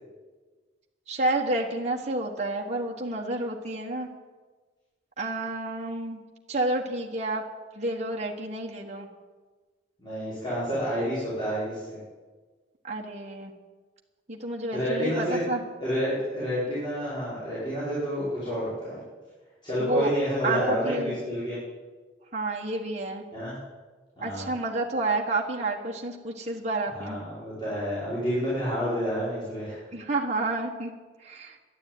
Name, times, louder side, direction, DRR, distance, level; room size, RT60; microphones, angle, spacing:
voice 1, 1.1-4.1 5.2-6.2 6.5-7.4 7.7-9.1 12.8-13.5 14.3-15.6 19.8-20.1 20.4-21.2 22.3-23.2 24.2-27.2 29.9-30.9 31.2-31.6, right 2 dB, 40° right, -1 dB, 1.4 m, -29 dB
voice 2, 10.0-12.0 14.7-15.4 15.8-19.0 19.6-21.6 23.3-23.5 24.2-24.5 26.9-29.8, equal, 25° left, -11 dB, 5.7 m, -29 dB
12.5 x 10.5 x 9.3 m, 1.3 s
head